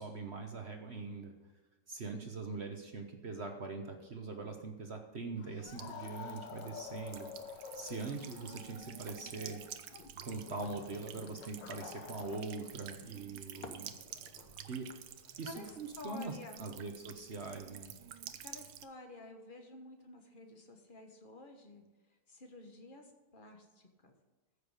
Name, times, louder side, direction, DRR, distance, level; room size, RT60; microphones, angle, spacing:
voice 1, 0.0-1.3 1.9-7.3 7.7-9.6 10.2-14.0 14.7-14.9 15.4-17.9, right 3 dB, 45° right, 4 dB, 1.1 m, -42 dB
sound 1, 5.4-12.8 13.0-16.9, left 7 dB, 75° left, 1.4 m, -51 dB
Buzz / Water tap faucet / Trickle dribble, 5.6-18.8, right 10 dB, 70° right, 1.3 m, -51 dB
sound 2, 7.3-9.5 10.0-12.6 13.5-14.6, left 5 dB, 55° left, 1.3 m, -56 dB
voice 2, 15.4-16.6 18.4-21.8 22.3-24.1, left 2 dB, 30° left, 4 dB, 1.4 m, -51 dB
14.5 x 6.6 x 5.0 m, 1.2 s
omnidirectional pair, 2.0 m